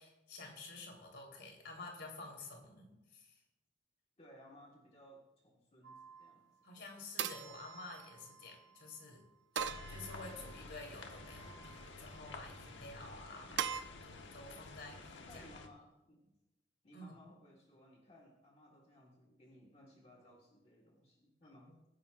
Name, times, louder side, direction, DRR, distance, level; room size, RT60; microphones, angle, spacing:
voice 1, 0.0-3.4 6.6-9.2 9.6-15.5 16.9-17.1 21.7-21.8, left 2 dB, 65° left, 0 dB, 3.6 m, -51 dB
voice 2, 4.2-6.5 15.2-16.2 16.8-21.8, equal, 35° left, -2 dB, 1.6 m, -60 dB
sound 1, 5.8-6.3 7.2-8.5 9.6-10.6 11.2-11.8 13.6-13.8, right 7 dB, 75° right, 0.6 m, -42 dB
sound 2, 9.6-15.7, left 3 dB, 85° left, 1.3 m, -51 dB
23.5 x 10.5 x 2.5 m, 0.95 s
head